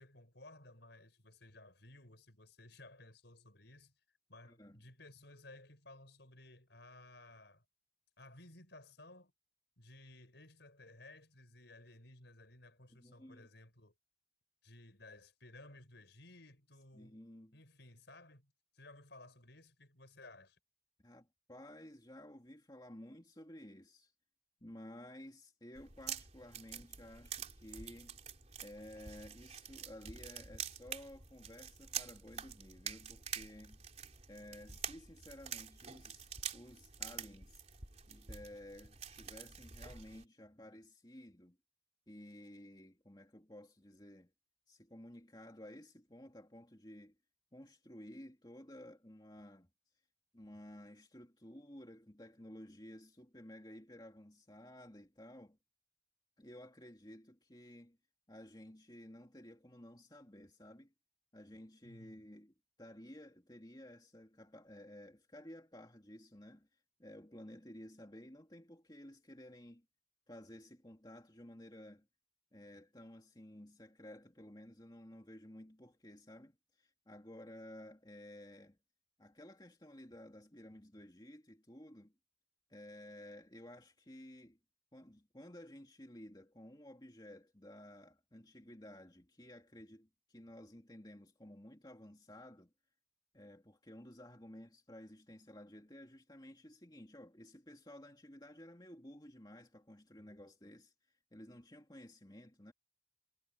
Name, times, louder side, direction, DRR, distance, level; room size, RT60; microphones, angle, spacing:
voice 1, 0.0-3.9 4.3-7.6 8.2-9.3 9.8-13.9 14.6-17.2 17.5-20.6 61.8-62.2, left 2 dB, 60° left, 5.8 m, -57 dB
voice 2, 4.4-4.8 12.9-13.5 16.9-17.6 21.0-24.1 24.6-28.2 28.6-33.8 34.3-37.6 38.1-41.6 42.1-44.3 44.7-47.1 47.5-49.7 50.3-55.6 56.4-58.0 58.3-60.9 61.3-66.7 67.0-69.8 70.3-72.1 72.5-78.8 79.2-82.1 82.7-84.6 84.9-92.7 93.3-102.7, left 1 dB, 20° left, 2.7 m, -54 dB
sound 1, 25.7-40.2, right 8 dB, 35° right, 3.8 m, -47 dB
head